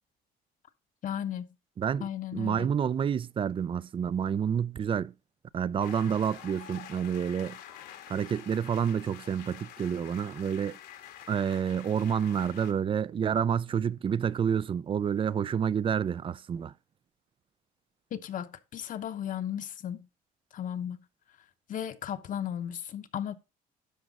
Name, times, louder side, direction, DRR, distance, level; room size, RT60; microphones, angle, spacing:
voice 1, 1.0-1.5 2.0-2.7 18.1-20.1 20.5-21.0 21.7-23.3, left 10 dB, 50° left, 0.9 m, -35 dB
voice 2, 1.8-2.1 2.3-5.1 5.5-7.6 8.1-10.8 11.3-16.7, right 8 dB, 30° right, 0.4 m, -29 dB
sound 1, 5.8-12.7, left 10 dB, 80° left, 1.7 m, -48 dB
12.0 x 4.9 x 4.0 m
cardioid pair, 110°, 17 cm